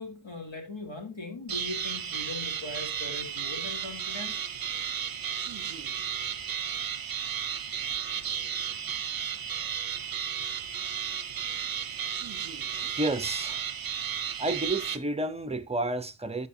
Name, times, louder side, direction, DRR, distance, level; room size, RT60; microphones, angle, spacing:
voice 1, 0.0-4.4, left 2 dB, 80° left, 2.7 m, -39 dB
sound 1, 1.5-15.0, right 8 dB, 50° right, 0.6 m, -33 dB
voice 2, 12.7-13.7 14.4-16.5, right 2 dB, 15° right, 0.6 m, -31 dB
14.0 x 4.9 x 2.7 m
wide cardioid pair, 115°, 46 cm